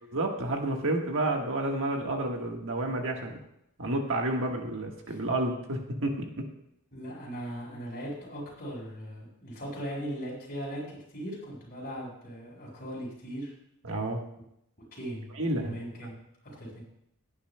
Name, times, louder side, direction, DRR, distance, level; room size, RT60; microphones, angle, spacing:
voice 1, 0.1-3.3 3.8-6.4 13.8-14.2 15.4-15.8, right 1 dB, 60° right, 2 dB, 1.5 m, -30 dB
voice 2, 6.9-13.5 14.9-15.3 15.6-16.1 16.4-16.8, equal, 45° left, -3 dB, 4.9 m, -39 dB
17.0 x 9.7 x 2.2 m, 0.77 s
head